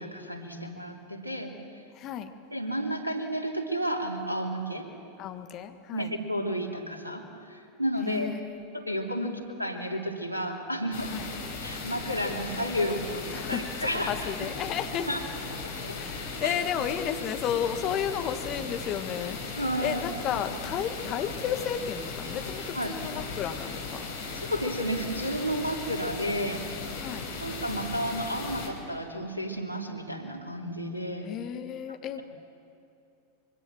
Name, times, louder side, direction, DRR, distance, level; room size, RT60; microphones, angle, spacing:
voice 1, 0.0-1.5 2.5-4.9 5.9-7.2 7.5-8.3 8.7-11.1 11.6-14.3 15.1-15.2 15.9-16.0 16.4-16.5 19.5-20.0 22.7-22.9 24.3-26.6 27.4-31.3 31.9-32.0, equal, 90° right, 2 dB, 3.2 m, -32 dB
voice 2, 1.9-2.3 5.2-6.1 8.0-8.6 9.2-9.4 11.1-11.3 13.3-15.1 16.0-19.4 19.8-24.1 27.0-27.2 31.2-32.2, left 9 dB, 35° left, 7 dB, 1.7 m, -33 dB
sound 1, 10.9-28.7, left 4 dB, 60° left, 4.8 m, -37 dB
24.5 x 24.5 x 7.5 m, 2.7 s
figure-of-eight pair, 90°, 0 cm